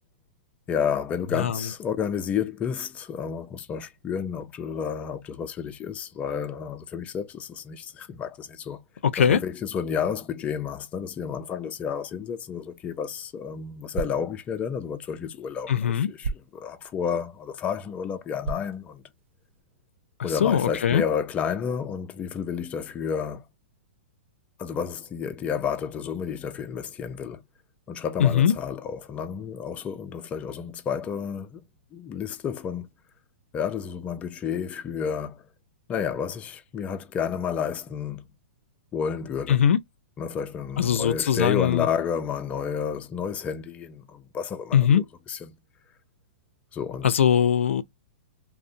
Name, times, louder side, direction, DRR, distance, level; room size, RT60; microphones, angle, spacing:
voice 1, 0.7-8.8 9.2-19.0 20.2-23.4 24.6-27.4 27.9-31.6 31.9-32.9 33.5-35.4 35.9-38.2 38.9-39.6 40.2-45.5 46.7-47.1, left 7 dB, 20° left, 0.4 m, -31 dB
voice 2, 9.0-9.4 15.7-16.1 20.4-21.0 28.2-28.5 39.5-39.8 40.8-41.9 44.7-45.0 47.0-47.8, left 8 dB, 80° left, 0.4 m, -21 dB
swing ruler, 12.7-19.6, right 4 dB, 65° right, 0.5 m, -40 dB
2.6 x 2.0 x 2.5 m
hypercardioid pair, 135°, 7 cm